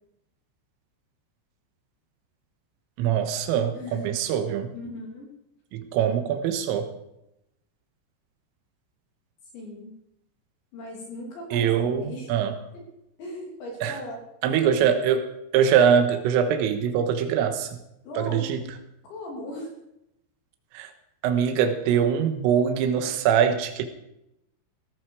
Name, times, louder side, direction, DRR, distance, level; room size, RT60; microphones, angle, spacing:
voice 1, 3.0-4.7 5.7-6.9 11.5-12.5 13.8-13.9 14.4-17.8 18.2-18.6 20.7-20.9 21.2-23.9, right 8 dB, 80° right, 7 dB, 3.8 m, -23 dB
voice 2, 3.7-4.1 4.7-5.3 9.5-9.9 10.7-12.4 13.2-14.5 18.0-18.5 19.0-19.7, left 1 dB, 65° left, -1 dB, 5.3 m, -38 dB
18.0 x 14.5 x 4.8 m, 0.84 s
omnidirectional pair, 5.9 m